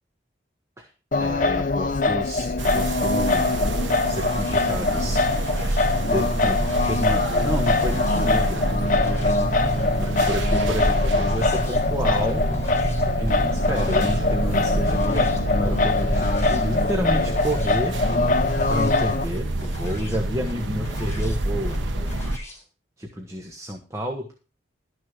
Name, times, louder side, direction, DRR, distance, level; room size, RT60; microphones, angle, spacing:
Singing, 1.1-19.2, left 3 dB, 45° left, 0.7 m, -23 dB
voice 1, 1.2-3.5 4.1-5.2 6.1-8.6 10.0-12.4 13.1-18.0 18.7-21.7 23.0-24.4, equal, 15° right, 2 dB, 1.5 m, -30 dB
sound 1, 2.6-22.4, right 1 dB, 90° right, 1.1 m, -27 dB
sound 2, 3.7-22.6, left 1 dB, 15° left, 3.9 m, -44 dB
13.0 x 6.6 x 6.1 m, 0.34 s
head